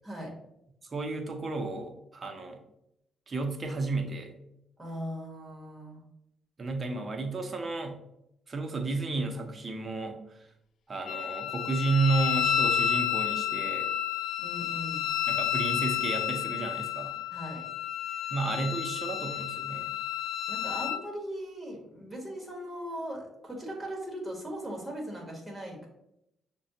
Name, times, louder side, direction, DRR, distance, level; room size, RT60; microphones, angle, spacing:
voice 1, 0.9-2.6 3.3-4.3 6.6-8.0 8.5-10.2 10.9-13.9 15.3-17.2 18.3-19.9, right 3 dB, 35° right, 4 dB, 0.7 m, -32 dB
voice 2, 4.8-6.0 14.4-15.1 17.3-17.6 18.1-18.3 20.5-25.9, equal, 15° right, 0 dB, 1.4 m, -39 dB
Wind instrument woodwind instrument, 11.1-21.0, left 10 dB, 65° left, 0.3 m, -31 dB
6.0 x 2.2 x 2.8 m, 0.81 s
cardioid pair, 90°, 0 cm